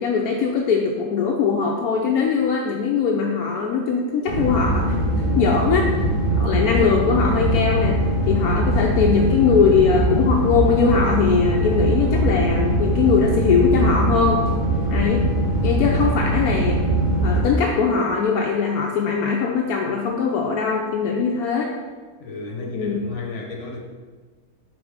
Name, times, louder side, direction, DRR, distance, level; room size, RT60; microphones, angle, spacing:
voice 1, 0.0-5.0 5.4-5.9 6.4-14.4 14.9-15.3 15.6-16.8 17.2-21.7 22.7-23.0, left 5 dB, 75° left, 0 dB, 1.0 m, -21 dB
sound 1, 4.3-17.4, right 1 dB, 40° right, 1.2 m, -21 dB
voice 2, 22.2-23.8, left 3 dB, 55° left, 1 dB, 1.2 m, -33 dB
4.8 x 3.9 x 5.0 m, 1.4 s
omnidirectional pair, 1.6 m